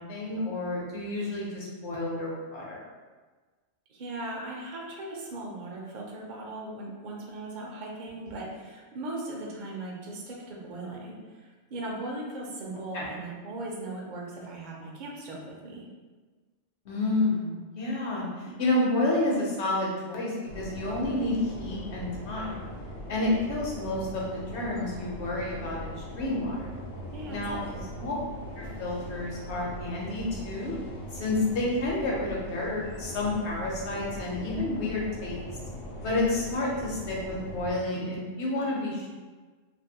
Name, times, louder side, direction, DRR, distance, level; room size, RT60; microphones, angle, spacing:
voice 1, 0.0-2.8 12.9-13.1 16.9-22.5 23.1-26.7 27.3-27.6 28.0-28.1 28.6-30.7 31.1-35.4 36.0-39.1, left 2 dB, 65° left, -3 dB, 0.9 m, -30 dB
voice 2, 3.9-15.9 27.1-27.8, right 2 dB, 55° right, -3 dB, 0.5 m, -38 dB
sound 1, 20.5-37.8, equal, 90° left, 1.0 m, -40 dB
2.6 x 2.5 x 2.7 m, 1.4 s
omnidirectional pair, 1.3 m